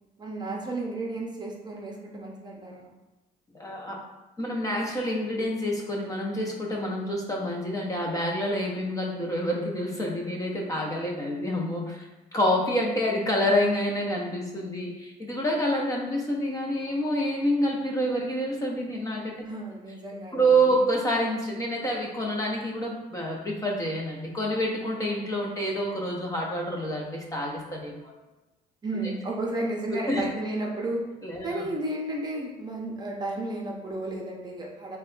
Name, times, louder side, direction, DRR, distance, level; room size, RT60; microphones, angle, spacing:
voice 1, 0.2-2.9 19.4-20.8 28.8-31.0 31.4-35.0, right 2 dB, 25° right, -1 dB, 0.7 m, -33 dB
voice 2, 3.5-4.0 4.4-19.5 20.3-28.1 30.1-30.2 31.2-31.7, equal, 20° left, -1 dB, 0.6 m, -27 dB
3.2 x 2.2 x 3.8 m, 1.1 s
cardioid pair, 100°, 16 cm